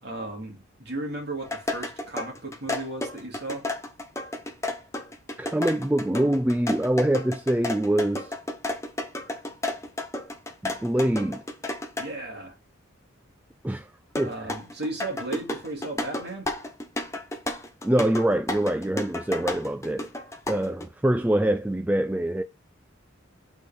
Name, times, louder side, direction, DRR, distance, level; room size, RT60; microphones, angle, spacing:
voice 1, 0.0-3.7 12.0-12.6 14.2-16.5, right 2 dB, 50° right, 2.5 m, -35 dB
sound 1, 1.4-12.1 14.1-20.8, left 1 dB, 15° left, 0.9 m, -32 dB
voice 2, 5.4-8.3 10.6-11.4 13.6-13.9 14.2-14.3 17.8-20.1 20.5-22.4, right 1 dB, 10° right, 0.3 m, -24 dB
8.0 x 4.2 x 3.4 m
head